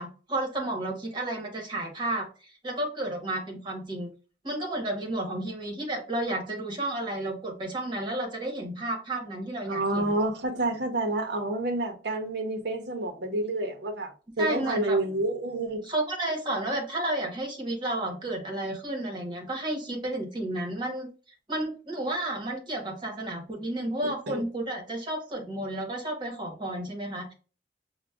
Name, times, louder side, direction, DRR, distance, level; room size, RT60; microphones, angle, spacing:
voice 1, 0.0-4.1 4.4-10.1 14.4-15.0 15.8-21.1 21.5-27.3, right 1 dB, 25° right, 1.1 m, -32 dB
voice 2, 9.7-14.1 14.4-15.9 24.0-24.4, right 2 dB, 80° right, 0.7 m, -29 dB
5.9 x 2.2 x 2.3 m
head